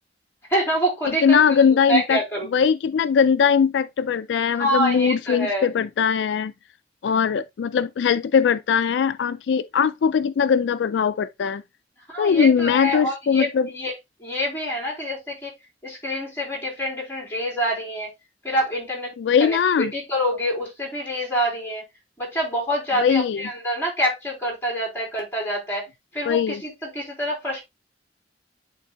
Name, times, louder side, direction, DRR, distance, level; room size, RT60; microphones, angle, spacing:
voice 1, 0.5-2.5 4.5-5.7 12.1-13.9 14.2-15.5 15.8-18.1 18.4-19.1 19.4-19.6 19.9-21.8 22.2-25.9 26.1-27.6, equal, 15° left, 3.6 m, -26 dB
voice 2, 1.2-2.2 2.5-6.5 7.0-11.6 12.2-13.7 19.2-19.9 23.0-23.4 26.3-26.6, left 7 dB, 85° left, 0.3 m, -20 dB
11.0 x 3.8 x 2.3 m
head